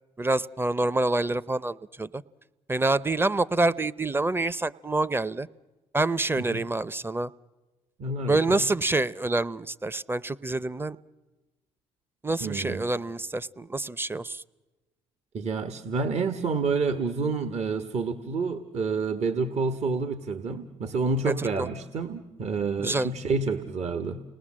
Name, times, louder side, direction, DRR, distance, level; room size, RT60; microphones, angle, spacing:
voice 1, 0.2-2.2 2.7-5.5 5.9-7.3 8.3-11.0 12.2-14.4 21.3-21.7 22.8-23.1, right 2 dB, 15° right, 18 dB, 0.7 m, -27 dB
voice 2, 8.0-8.6 12.4-12.9 15.3-24.2, right 4 dB, 55° right, 8 dB, 1.5 m, -29 dB
29.5 x 19.5 x 7.5 m, 1.2 s
hypercardioid pair, 55°, 14 cm